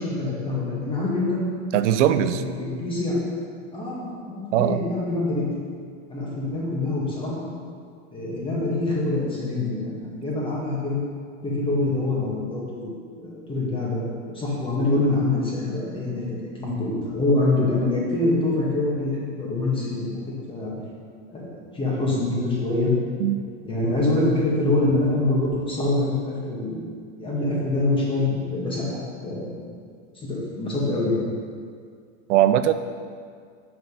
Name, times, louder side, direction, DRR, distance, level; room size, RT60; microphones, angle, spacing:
voice 1, 0.0-1.4 1.9-3.2 3.7-5.5 6.1-7.5 8.1-11.0 11.4-14.0 14.3-16.2 16.6-19.1 19.4-20.2 20.5-20.7 21.3-22.9 23.6-26.8 27.2-29.6 30.1-31.2, left 2 dB, 15° left, -6 dB, 1.7 m, -25 dB
voice 2, 1.7-2.4 4.5-4.8 23.2-23.4 32.3-32.7, right 11 dB, 85° right, 11 dB, 0.5 m, -20 dB
5.9 x 5.4 x 5.5 m, 2.1 s
supercardioid pair, 135°, 35 cm